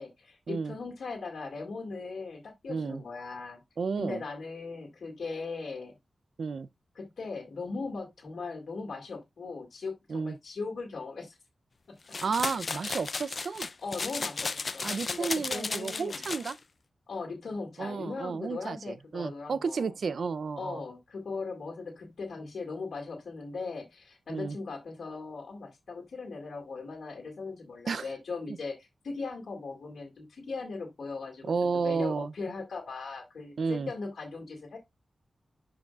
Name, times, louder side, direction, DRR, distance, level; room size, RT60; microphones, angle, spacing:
voice 1, 0.0-3.6 4.0-5.9 7.0-11.4 13.8-16.2 17.1-19.9 20.6-31.5 31.8-34.8, left 4 dB, 75° left, 2.0 m, -39 dB
voice 2, 2.7-3.0 3.8-4.2 6.4-6.7 10.1-10.4 12.2-13.7 14.8-16.6 17.8-20.8 24.3-24.6 27.9-28.1 31.4-32.3 33.6-33.9, right 5 dB, 70° right, 0.5 m, -32 dB
sound 1, 12.1-16.5, left 4 dB, 45° left, 0.5 m, -34 dB
11.5 x 4.9 x 2.4 m
wide cardioid pair, 120°, 0 cm